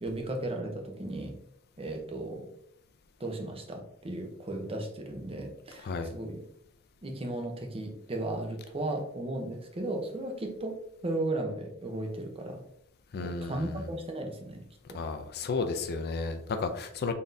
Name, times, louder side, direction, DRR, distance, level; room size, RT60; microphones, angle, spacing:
voice 1, 0.0-1.4 1.8-2.5 3.2-6.4 7.0-10.8 11.0-12.6 13.2-14.6 14.9-15.0, right 1 dB, 25° right, 3 dB, 0.7 m, -35 dB
voice 2, 13.1-13.9 14.9-17.1, left 4 dB, 50° left, 7 dB, 0.4 m, -33 dB
4.0 x 3.5 x 2.6 m, 0.72 s
head